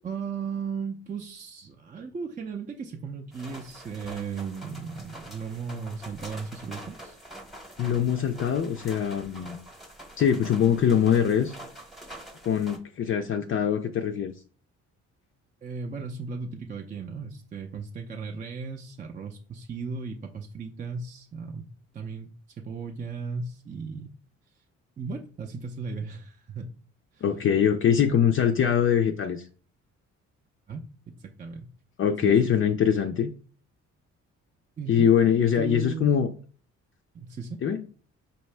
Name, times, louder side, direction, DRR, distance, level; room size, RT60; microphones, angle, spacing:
voice 1, 0.0-7.2 15.6-22.3 22.6-24.1 25.0-26.8 27.1-27.4 30.7-31.7 32.2-32.3 34.8-35.2 35.6-36.2 37.1-37.6, right 5 dB, 25° right, 0.4 m, -36 dB
sound 1, 3.3-12.8, right 1 dB, ahead, 0.9 m, -45 dB
voice 2, 7.8-9.6 10.2-11.5 12.4-14.3 27.2-29.4 32.0-33.3 34.9-36.3 37.6-37.8, left 8 dB, 45° left, 0.4 m, -23 dB
4.3 x 2.8 x 3.2 m
cardioid pair, 90°, 30 cm